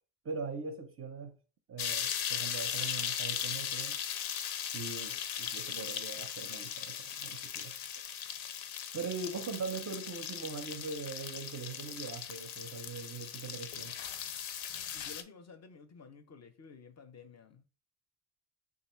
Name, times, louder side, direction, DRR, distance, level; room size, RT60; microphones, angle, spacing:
voice 1, 0.2-1.3 1.7-4.0 4.6-7.8 8.9-14.0, right 4 dB, 35° right, 0.4 m, -41 dB
sound 1, 1.8-15.2, left 9 dB, 85° left, 0.6 m, -38 dB
voice 2, 14.9-17.6, left 5 dB, 35° left, 0.5 m, -53 dB
3.7 x 2.4 x 4.3 m
cardioid pair, 130°, 45 cm